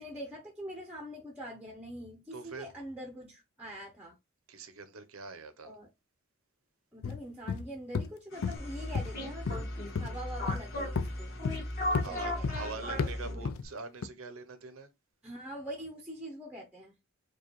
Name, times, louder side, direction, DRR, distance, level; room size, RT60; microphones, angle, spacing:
voice 1, 0.0-4.2 5.6-5.9 6.9-11.4 11.9-13.4 15.2-16.9, equal, 5° right, 0.6 m, -44 dB
voice 2, 2.3-2.7 4.5-5.7 11.9-14.9, right 4 dB, 80° right, 0.7 m, -44 dB
Footsteps Walking On Wooden Floor Fast Pace, 7.0-7.2 7.5-7.6 7.9-8.1 8.4-8.6 8.9-9.1 9.5-9.6 10.0-10.1 10.5-10.6 11.0-11.1 11.4-11.6 11.9-12.1 12.4-12.6 13.0-13.1 13.4-13.6 14.0-14.1, left 5 dB, 80° left, 0.4 m, -32 dB
sound 1, 8.3-13.3, left 3 dB, 65° left, 1.7 m, -52 dB
sound 2, 8.6-13.7, left 1 dB, 45° left, 1.6 m, -36 dB
4.7 x 2.3 x 2.9 m
head